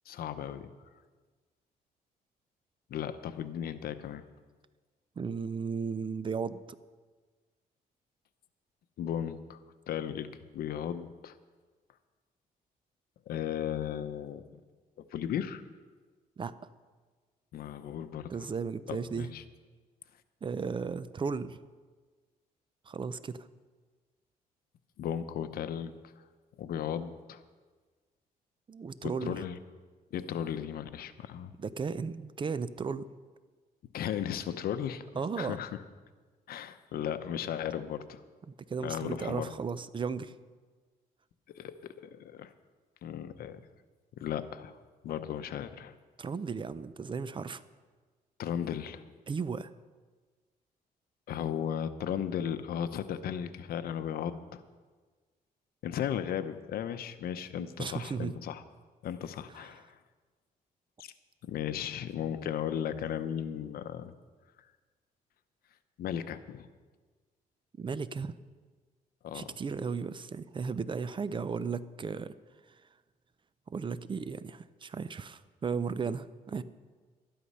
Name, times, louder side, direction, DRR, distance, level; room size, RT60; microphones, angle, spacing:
voice 1, 0.1-0.7 2.9-4.2 9.0-9.6 9.9-11.3 13.3-14.4 15.1-15.6 17.5-18.5 18.9-19.4 25.0-25.9 26.6-27.4 29.2-29.6 30.1-31.5 33.9-35.0 35.4-35.7 36.5-38.2 38.8-39.5 41.5-42.5 43.0-43.6 44.2-44.7 45.0-45.9 48.4-49.0 51.3-54.6 55.8-58.6 59.0-59.9 61.0-61.1 61.4-64.1 66.0-66.7 69.2-69.5, left 9 dB, 75° left, 11 dB, 0.8 m, -35 dB
voice 2, 5.2-6.6 16.4-16.5 18.3-19.3 20.4-21.6 22.9-23.5 28.7-29.3 31.6-33.1 35.2-35.6 38.5-40.3 46.2-47.6 49.3-49.7 57.6-58.4 67.8-68.3 69.3-72.3 73.7-76.6, right 5 dB, 30° right, 15 dB, 0.5 m, -35 dB
12.5 x 11.5 x 5.5 m, 1.4 s
cardioid pair, 100°, 16 cm